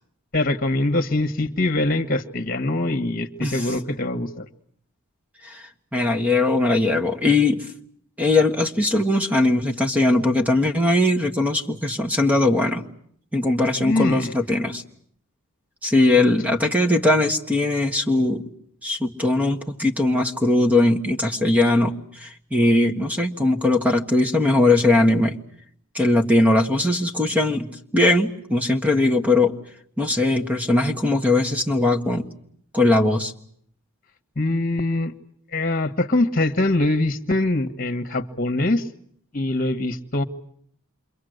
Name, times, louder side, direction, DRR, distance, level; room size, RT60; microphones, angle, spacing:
voice 1, 0.3-4.4 13.8-14.4 34.3-35.1 35.5-38.9 39.3-40.2, left 2 dB, 40° left, 8 dB, 1.5 m, -23 dB
voice 2, 5.9-7.6 8.2-12.8 13.3-14.8 15.8-18.4 18.8-25.3 25.9-29.5 30.0-32.2 32.7-33.3, left 2 dB, 5° right, 5 dB, 1.4 m, -20 dB
28.0 x 24.5 x 8.1 m, 0.66 s
head